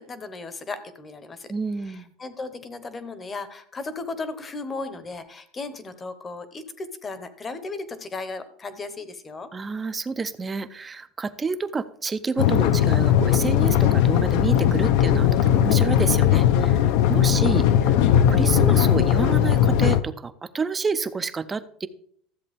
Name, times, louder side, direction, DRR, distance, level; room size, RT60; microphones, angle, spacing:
voice 1, 0.0-1.5 1.8-9.5, left 3 dB, 20° left, 12 dB, 0.8 m, -36 dB
voice 2, 1.5-2.1 9.5-16.8 17.1-21.9, right 4 dB, 15° right, 13 dB, 0.5 m, -29 dB
sound 1, 12.4-20.0, left 10 dB, 65° left, 0.6 m, -19 dB
13.5 x 7.7 x 3.5 m, 0.65 s
supercardioid pair, 155°, 0 cm